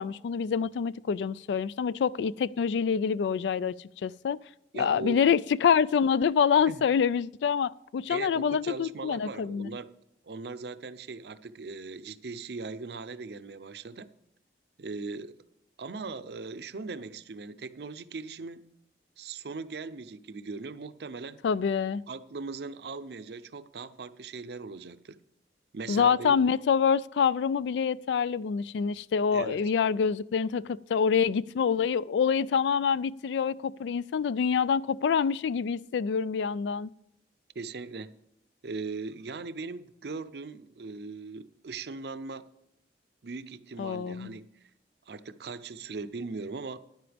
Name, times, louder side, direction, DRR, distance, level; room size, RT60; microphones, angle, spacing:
voice 1, 0.0-3.7 4.0-4.4 4.8-9.7 21.4-22.0 25.9-36.9 43.8-44.4, left 6 dB, 80° left, 0.3 m, -26 dB
voice 2, 4.7-5.2 6.7-6.8 8.1-9.9 10.2-14.1 14.8-15.4 15.8-18.6 19.2-21.4 22.1-25.2 25.7-26.4 29.3-29.6 37.5-38.1 38.6-42.5 43.2-44.4 45.1-46.8, right 4 dB, 70° right, 0.6 m, -39 dB
12.5 x 10.5 x 3.4 m
head